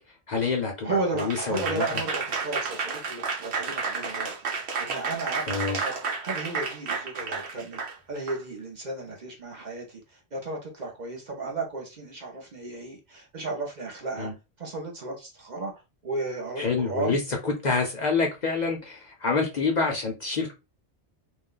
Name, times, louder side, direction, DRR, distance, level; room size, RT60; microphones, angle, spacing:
voice 1, 0.3-1.9 5.5-5.8 14.2-14.3 16.6-20.6, left 4 dB, 50° left, 0.6 m, -27 dB
voice 2, 0.8-6.0 6.2-7.8 8.1-14.3 14.6-17.2, right 3 dB, 45° right, 0.8 m, -34 dB
Applause / Crowd, 1.2-8.4, right 5 dB, 75° right, 1.0 m, -31 dB
2.5 x 2.2 x 3.6 m
omnidirectional pair, 1.1 m